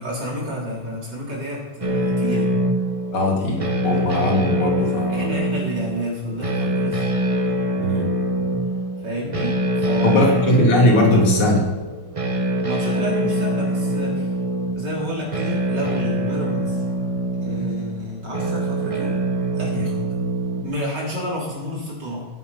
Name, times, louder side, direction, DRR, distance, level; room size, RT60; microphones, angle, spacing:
voice 1, 0.0-2.5 5.1-7.0 9.0-10.2 12.6-14.4 14.7-16.8 17.4-19.2 19.5-20.1 20.6-22.2, equal, 50° right, -4 dB, 4.3 m, -30 dB
sound 1, 1.8-20.6, right 1 dB, 25° right, 0.8 m, -24 dB
voice 2, 3.1-5.4 7.8-8.1 10.0-11.7, left 1 dB, 85° left, 0 dB, 3.6 m, -19 dB
15.0 x 11.0 x 5.6 m, 1.1 s
omnidirectional pair, 2.4 m